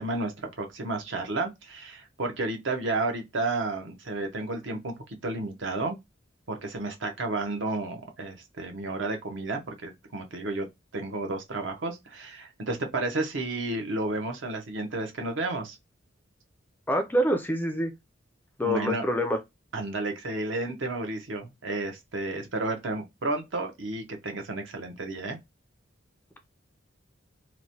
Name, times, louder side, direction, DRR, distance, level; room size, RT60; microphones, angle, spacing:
voice 1, 0.0-4.9 5.2-6.0 6.5-10.7 10.9-15.8 18.6-19.1 19.7-25.4, right 2 dB, 70° right, 0.7 m, -32 dB
voice 2, 16.9-17.9 18.6-19.4, equal, 10° left, 0.3 m, -26 dB
3.0 x 2.1 x 2.6 m
head